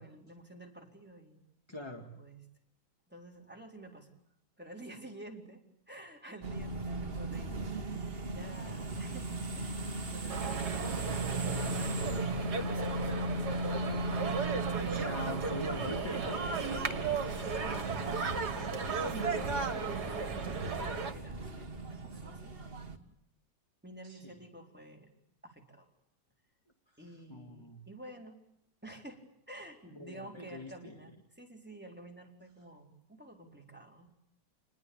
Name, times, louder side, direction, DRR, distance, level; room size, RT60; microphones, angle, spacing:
voice 1, 0.0-1.4 1.7-2.4 3.1-4.1 4.6-7.7 8.3-12.2 17.0-19.5 19.9-22.5 23.8-25.1 25.4-25.9 27.0-28.4 28.8-34.1, right 1 dB, 5° right, 0 dB, 4.1 m, -51 dB
voice 2, 1.7-2.1 14.8-16.5 24.0-24.4 26.9-27.8 29.9-30.9, left 1 dB, 15° left, 4 dB, 1.8 m, -43 dB
sound 1, 6.4-23.0, right 2 dB, 35° right, 1.9 m, -38 dB
sound 2, 10.3-21.1, right 4 dB, 65° right, 2.6 m, -35 dB
28.5 x 20.5 x 8.7 m, 0.77 s
omnidirectional pair, 1.9 m